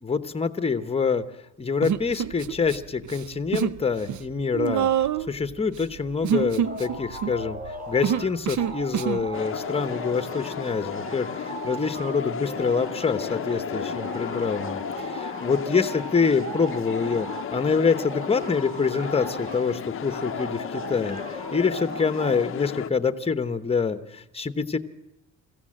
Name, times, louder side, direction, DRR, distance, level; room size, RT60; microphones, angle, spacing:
voice 1, 0.0-1.2 1.6-4.9 5.3-24.8, left 5 dB, 20° left, 11 dB, 1.0 m, -26 dB
Human voice, 1.8-2.8 3.0-3.8 4.1-9.3, right 9 dB, 60° right, 0.7 m, -27 dB
sound 1, 6.6-8.3 8.6-17.5 17.9-19.7 20.1-22.4, right 1 dB, 25° right, 3.8 m, -37 dB
sound 2, 9.3-22.9, left 9 dB, 40° left, 0.7 m, -35 dB
23.0 x 15.5 x 7.5 m, 0.97 s
cardioid pair, 145°, 33 cm